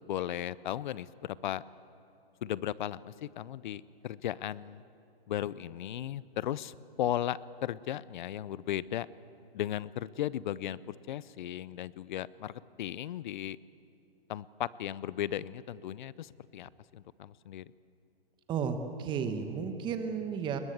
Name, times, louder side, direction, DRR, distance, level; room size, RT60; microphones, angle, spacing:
voice 1, 0.1-1.6 2.4-4.8 5.3-9.1 9.5-13.6 14.3-17.7, left 11 dB, 50° left, 20 dB, 0.6 m, -36 dB
voice 2, 18.5-20.6, right 6 dB, 15° right, 8 dB, 1.2 m, -33 dB
21.5 x 20.0 x 8.0 m, 2.8 s
hypercardioid pair, 160°, 31 cm